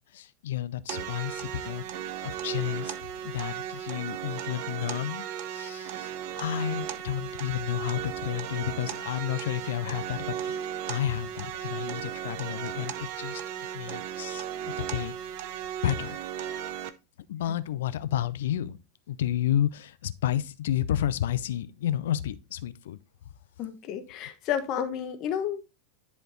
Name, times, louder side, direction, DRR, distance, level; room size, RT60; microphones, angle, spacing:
voice 1, 0.1-1.8 2.2-2.9 3.2-6.1 6.4-10.6 10.9-13.4 13.7-14.4 14.8-15.1 15.8-16.2 17.3-18.8 19.1-23.0, left 11 dB, 60° left, 0.6 m, -31 dB
sound 1, 0.9-16.9, right 9 dB, 45° right, 0.8 m, -36 dB
voice 2, 23.6-25.6, left 9 dB, 35° left, 1.3 m, -31 dB
10.5 x 4.4 x 4.1 m
figure-of-eight pair, 90°, 0 cm